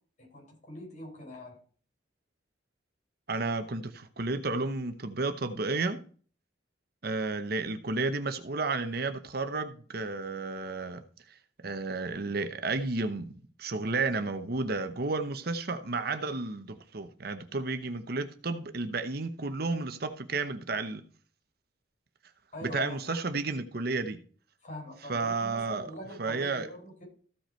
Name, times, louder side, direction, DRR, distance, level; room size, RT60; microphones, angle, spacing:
voice 1, 0.2-1.6 22.5-23.2 24.6-27.0, left 1 dB, 40° left, 5.9 m, -43 dB
voice 2, 3.3-6.0 7.0-11.0 11.6-13.3 13.6-21.0 22.6-24.2 25.1-25.9 26.2-26.7, right 3 dB, 55° right, 0.9 m, -32 dB
14.5 x 5.5 x 4.4 m
head